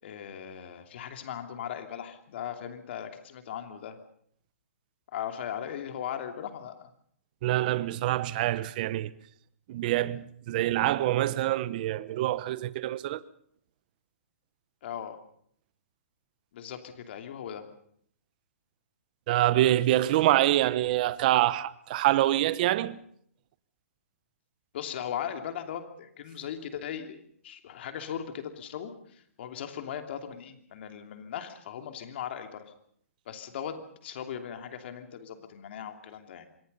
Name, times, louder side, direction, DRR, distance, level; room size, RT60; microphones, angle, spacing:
voice 1, 0.0-4.0 5.1-6.9 14.8-15.2 16.5-17.6 24.7-32.7 33.3-36.5, left 9 dB, 50° left, 2.9 m, -38 dB
voice 2, 7.4-9.1 9.7-13.2 19.3-23.0, right 14 dB, 35° right, 0.9 m, -25 dB
25.5 x 22.0 x 5.5 m
hypercardioid pair, 165°, 8 cm